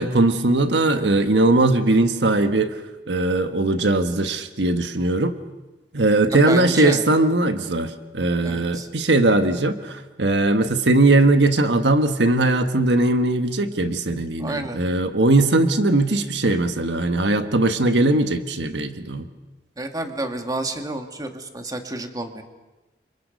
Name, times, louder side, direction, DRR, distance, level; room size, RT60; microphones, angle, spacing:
voice 1, 0.0-5.3 5.9-19.3, right 2 dB, 85° right, 8 dB, 1.4 m, -20 dB
voice 2, 6.3-7.0 8.4-8.9 14.4-14.8 19.8-22.4, right 2 dB, 20° right, 5 dB, 2.1 m, -29 dB
30.0 x 26.5 x 5.3 m, 1.1 s
head